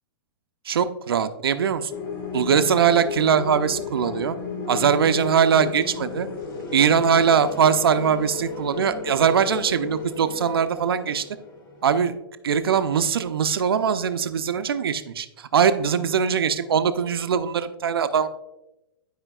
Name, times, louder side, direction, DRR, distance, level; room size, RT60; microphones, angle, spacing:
voice 1, 0.7-1.9 2.3-4.4 4.7-6.3 6.7-11.2 11.8-12.1 12.4-18.3, right 7 dB, 85° right, 10 dB, 0.5 m, -21 dB
sound 1, 1.9-12.0, left 5 dB, 65° left, 1.6 m, -34 dB
11.0 x 5.1 x 2.3 m, 0.96 s
hypercardioid pair, 130°, 12 cm